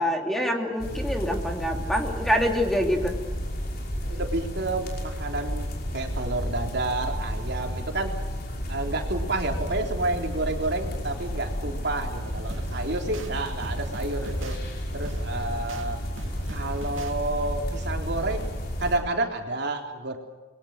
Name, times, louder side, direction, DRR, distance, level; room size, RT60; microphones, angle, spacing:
voice 1, 0.0-3.1, equal, ahead, 2 dB, 2.7 m, -25 dB
sound 1, 0.8-19.0, equal, 55° left, 5.6 m, -32 dB
voice 2, 4.1-8.1 8.7-14.5 14.9-16.0 16.5-18.5 18.8-20.2, right 2 dB, 60° right, 3 dB, 3.7 m, -30 dB
sound 2, 12.5-13.3 13.6-14.6 15.0-15.8 16.2-17.1, right 1 dB, 90° right, 2.3 m, -40 dB
28.5 x 22.5 x 6.6 m, 1.3 s
head